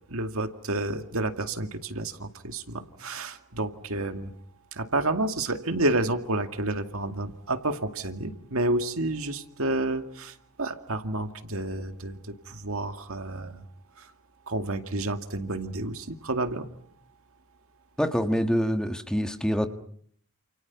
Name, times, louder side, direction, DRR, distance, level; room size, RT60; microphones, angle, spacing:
voice 1, 0.1-4.3 4.7-13.6 14.0-14.1 14.5-16.7, right 2 dB, 70° right, 7 dB, 2.3 m, -30 dB
voice 2, 18.0-19.7, equal, 5° left, 6 dB, 1.5 m, -25 dB
29.5 x 28.5 x 5.9 m, 0.62 s
head